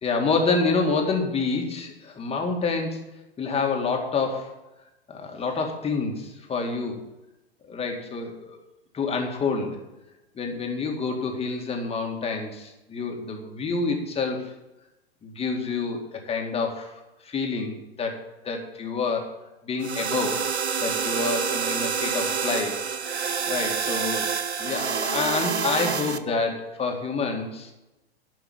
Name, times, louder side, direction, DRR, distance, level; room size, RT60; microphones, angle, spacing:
voice 1, 0.0-3.0 3.4-4.5 5.1-7.0 7.7-8.6 8.9-9.8 10.4-14.5 15.2-19.3 19.6-20.4 20.8-22.8 23.5-24.3 24.6-27.7, left 4 dB, 20° left, 2 dB, 2.1 m, -28 dB
sound 1, 19.8-26.2, right 6 dB, 90° right, 0.8 m, -27 dB
11.5 x 5.7 x 8.6 m, 0.98 s
figure-of-eight pair, 100°, 32 cm